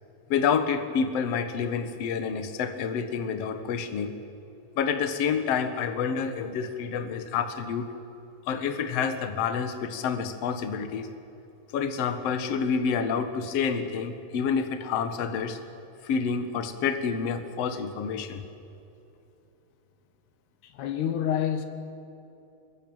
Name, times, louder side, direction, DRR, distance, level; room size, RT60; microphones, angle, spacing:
voice 1, 0.3-4.1 4.8-7.9 8.5-11.1 11.7-15.6 16.0-18.4, left 6 dB, 55° left, 8 dB, 1.9 m, -28 dB
voice 2, 20.6-21.7, left 9 dB, 75° left, 8 dB, 3.5 m, -28 dB
23.0 x 22.0 x 8.9 m, 2.9 s
omnidirectional pair, 4.8 m